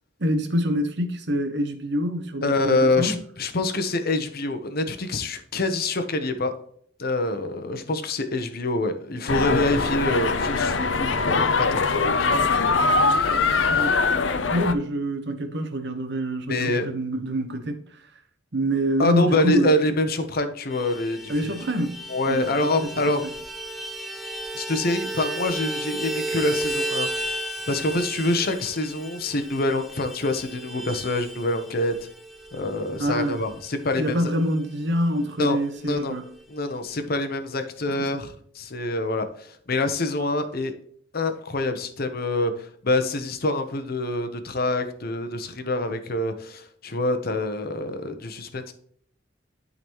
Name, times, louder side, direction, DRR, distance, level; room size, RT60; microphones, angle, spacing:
voice 1, 0.2-3.2 13.7-13.9 14.5-18.0 18.5-19.8 21.3-22.9 33.0-33.4 34.0-36.3 37.9-38.1, equal, 60° right, 1.2 m, -26 dB
voice 2, 2.4-6.5 7.0-14.0 16.5-16.9 19.0-21.6 22.1-23.2 24.5-31.9 32.5-34.2 35.4-36.2 36.5-40.7 41.1-48.7, left 2 dB, 50° left, 0.9 m, -26 dB
sound 1, 9.3-14.7, left 4 dB, 70° left, 0.7 m, -22 dB
Vehicle horn car horn honking, 20.7-34.6 34.9-35.0 35.3-35.5 35.7-36.5, right 1 dB, ahead, 0.8 m, -34 dB
12.0 x 4.0 x 3.1 m
head